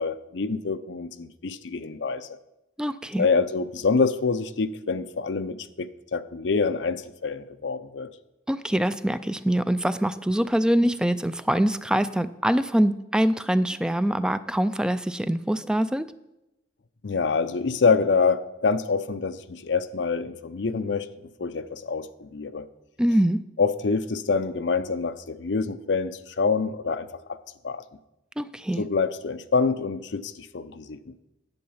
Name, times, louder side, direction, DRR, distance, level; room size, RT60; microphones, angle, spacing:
voice 1, 0.0-2.4 3.2-8.1 17.0-21.1 21.4-22.7 23.6-27.4 27.6-27.8 28.8-31.1, left 4 dB, 90° left, 11 dB, 0.6 m, -26 dB
voice 2, 2.8-3.3 8.5-16.1 23.0-23.4 28.4-28.8, right 1 dB, 5° right, 13 dB, 0.3 m, -24 dB
10.5 x 7.8 x 5.6 m, 0.92 s
head